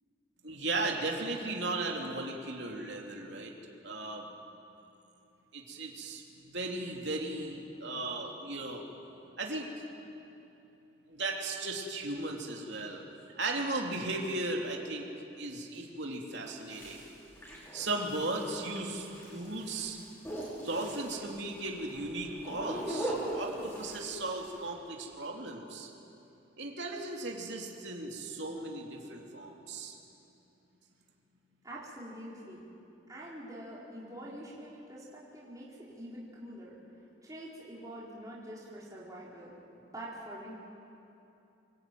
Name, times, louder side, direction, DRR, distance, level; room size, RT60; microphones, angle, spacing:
voice 1, 0.4-3.5 3.8-4.2 5.5-8.8 9.4-9.7 11.1-13.0 13.4-15.1 15.4-17.0 17.7-20.0 20.6-25.9 26.6-30.0, right 2 dB, 65° right, 0 dB, 3.1 m, -36 dB
sound 1, 16.4-24.7, right 1 dB, 15° left, 6.2 m, -40 dB
voice 2, 31.6-32.7 33.1-36.8 37.2-40.6, right 1 dB, 20° right, -6 dB, 4.4 m, -45 dB
25.5 x 21.5 x 9.4 m, 2.8 s
head